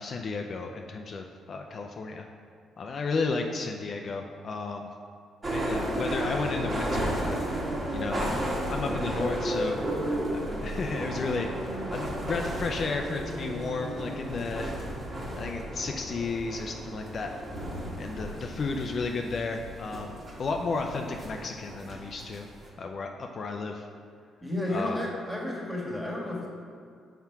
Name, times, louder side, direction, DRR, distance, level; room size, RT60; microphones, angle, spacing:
voice 1, 0.0-2.3 2.8-4.9 5.5-7.4 7.9-8.4 8.7-9.8 10.3-14.7 15.4-17.3 18.0-22.5 22.8-23.9 24.7-25.0, left 4 dB, 50° left, 3 dB, 0.4 m, -33 dB
sound 1, 5.4-22.7, right 1 dB, 35° right, 1.6 m, -33 dB
voice 2, 24.4-26.5, left 1 dB, 5° right, -3 dB, 1.8 m, -32 dB
5.6 x 4.6 x 5.8 m, 2.2 s
cardioid pair, 90°, 0 cm